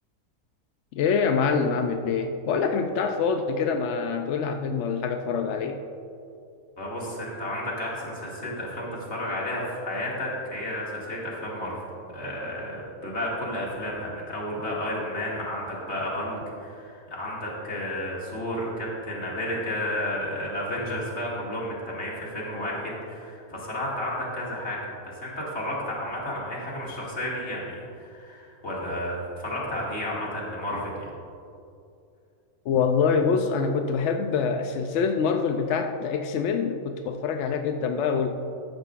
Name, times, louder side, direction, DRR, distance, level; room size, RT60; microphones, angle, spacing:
voice 1, 0.9-5.8 32.7-38.4, left 5 dB, 70° left, 5 dB, 0.7 m, -25 dB
voice 2, 6.8-11.8 12.1-31.1, left 1 dB, 45° left, -5 dB, 2.5 m, -32 dB
14.0 x 10.5 x 2.5 m, 2.5 s
omnidirectional pair, 1.7 m